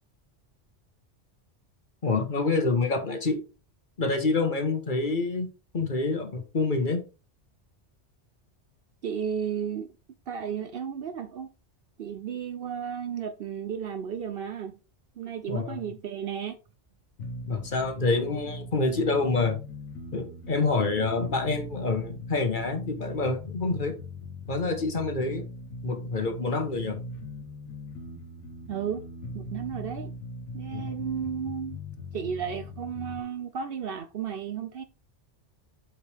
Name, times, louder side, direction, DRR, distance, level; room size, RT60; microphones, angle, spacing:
voice 1, 2.0-3.4 4.0-5.5 5.7-7.0 15.5-15.9 17.5-19.6 20.1-24.0 24.5-25.5 25.8-27.0 30.7-30.9, left 3 dB, 45° left, 1.3 m, -27 dB
voice 2, 9.0-9.9 10.3-11.5 12.0-14.8 15.2-16.6 28.7-29.0 29.3-30.1 30.5-31.8 32.1-34.8, right 8 dB, 60° right, 0.7 m, -33 dB
sound 1, 17.2-33.2, left 1 dB, 85° left, 1.3 m, -40 dB
7.9 x 5.0 x 3.4 m
omnidirectional pair, 1.2 m